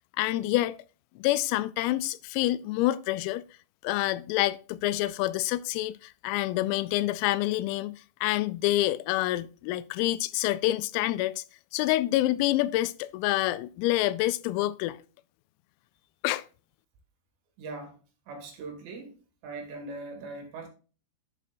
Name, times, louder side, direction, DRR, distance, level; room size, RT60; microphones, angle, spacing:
voice 1, 0.2-0.8 1.2-3.4 3.8-11.4 11.7-15.0 16.2-16.4, left 16 dB, 85° left, 3.3 m, -27 dB
voice 2, 17.6-18.0 18.3-19.1 19.4-20.7, right 3 dB, 60° right, 4.2 m, -40 dB
11.5 x 6.5 x 2.5 m
omnidirectional pair, 5.9 m